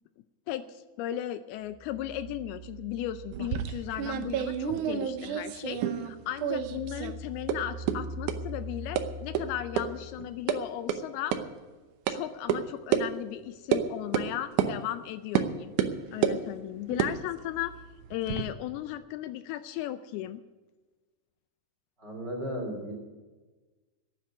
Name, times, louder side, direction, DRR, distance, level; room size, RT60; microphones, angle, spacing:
voice 1, 0.5-11.3 12.1-15.7 16.1-17.7 18.1-20.4, left 13 dB, 80° left, 12 dB, 2.5 m, -36 dB
sound 1, 1.7-5.6 6.0-10.5, right 1 dB, 30° left, 1.5 m, -43 dB
sound 2, 3.3-6.1 6.4-7.1 7.5-7.6 7.9-8.0 8.3-8.4 9.0-9.1 9.3-9.4 9.8-9.9 10.2-10.6 10.9-11.0 11.3-11.4 12.1-12.2 12.5-12.6 12.9-13.0 13.7-13.8 14.1-14.3 14.6-14.7 15.3-15.5 15.8-16.4 16.9-18.4, right 10 dB, 80° right, 1.8 m, -29 dB
voice 2, 22.0-22.9, equal, 30° right, 0 dB, 2.9 m, -35 dB
11.5 x 9.5 x 9.6 m, 1.3 s
omnidirectional pair, 4.6 m